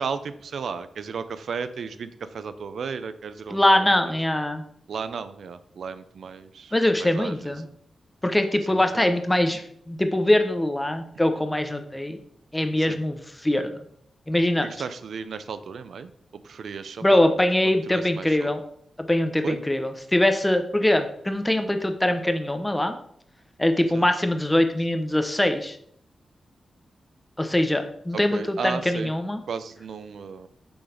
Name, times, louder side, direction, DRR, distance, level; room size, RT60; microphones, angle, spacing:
voice 1, 0.0-4.1 4.9-6.7 7.0-7.7 8.7-9.1 12.8-13.0 14.6-16.1 16.4-17.3 17.6-18.5 19.4-19.6 23.9-24.1 28.3-29.2 29.5-30.5, right 5 dB, 75° right, 12 dB, 0.5 m, -34 dB
voice 2, 3.5-4.6 6.7-7.6 8.2-12.2 12.5-13.2 13.4-13.7 14.3-14.7 17.0-18.6 19.0-23.0 23.6-25.8 27.4-29.4, left 1 dB, 10° left, 7 dB, 0.7 m, -22 dB
6.9 x 3.9 x 4.9 m, 0.67 s
wide cardioid pair, 125°, 0 cm